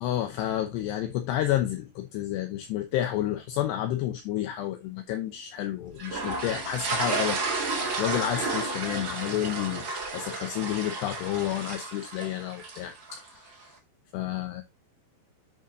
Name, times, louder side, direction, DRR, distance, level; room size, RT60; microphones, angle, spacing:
voice 1, 0.0-7.4 8.0-9.9 10.1-13.7 14.1-14.6, left 12 dB, 75° left, 2.8 m, -30 dB
sound 1, 6.0-13.3, right 3 dB, 40° right, 1.9 m, -32 dB
10.5 x 6.4 x 2.7 m
omnidirectional pair, 5.3 m